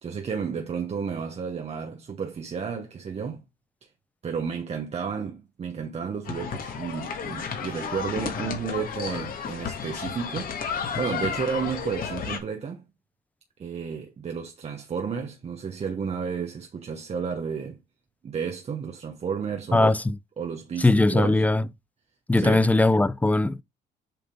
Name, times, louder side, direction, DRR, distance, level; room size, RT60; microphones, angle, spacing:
voice 1, 0.0-3.4 4.2-10.5 11.0-12.8 13.6-17.8 18.2-19.9 20.4-21.4 22.4-22.6, right 6 dB, 40° right, 1.1 m, -32 dB
sound 1, 6.3-12.4, left 6 dB, 60° left, 2.0 m, -32 dB
voice 2, 19.7-20.2 20.8-21.6 22.3-23.6, left 2 dB, 10° left, 0.5 m, -20 dB
7.7 x 3.6 x 5.1 m
cardioid pair, 105°, 17 cm